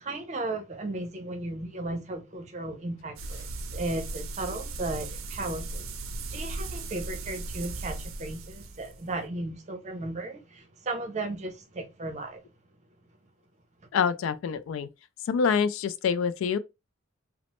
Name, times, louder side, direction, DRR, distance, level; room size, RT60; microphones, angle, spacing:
voice 1, 0.0-5.9 6.3-12.4, right 2 dB, 35° right, 0.6 m, -35 dB
sound 1, 3.2-9.2, right 3 dB, 80° right, 0.5 m, -37 dB
voice 2, 13.9-14.9 15.2-16.6, left 6 dB, 80° left, 0.3 m, -26 dB
3.0 x 2.0 x 2.9 m
head